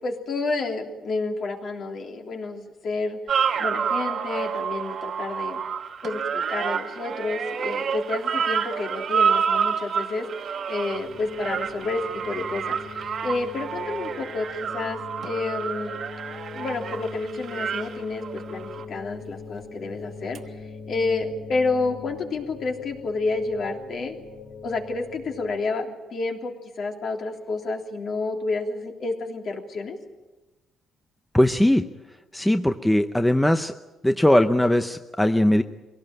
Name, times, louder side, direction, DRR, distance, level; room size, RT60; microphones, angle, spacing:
voice 1, 0.0-3.2 3.6-5.6 6.0-16.0 16.5-20.4 20.9-24.1 24.6-30.0, left 3 dB, 50° left, 2 dB, 3.3 m, -30 dB
sound 1, 3.3-18.8 20.4-20.5, right 7 dB, 50° right, 1.3 m, -28 dB
sound 2, 10.9-25.6, left 4 dB, 70° left, 5.5 m, -41 dB
voice 2, 31.3-31.9 32.3-33.7 34.0-35.6, left 1 dB, 5° left, 8 dB, 0.7 m, -20 dB
24.0 x 17.5 x 8.9 m, 1.1 s
cardioid pair, 145°, 0 cm